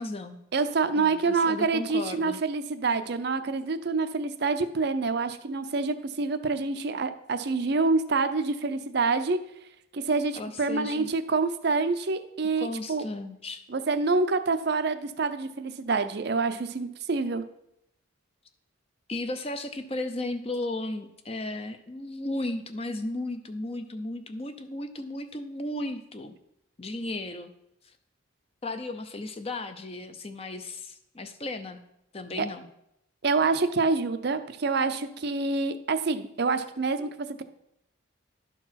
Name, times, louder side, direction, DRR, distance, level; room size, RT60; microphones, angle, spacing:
voice 1, 0.0-0.4 0.9-2.4 10.3-11.1 12.6-13.6 19.1-26.4 26.8-27.5 28.6-31.8 32.1-32.7, left 2 dB, 30° left, 9 dB, 0.6 m, -35 dB
voice 2, 0.5-9.4 9.9-13.0 13.7-17.4 32.4-32.5 33.2-37.4, right 4 dB, 50° right, 10 dB, 0.5 m, -27 dB
11.5 x 4.6 x 5.7 m, 0.81 s
head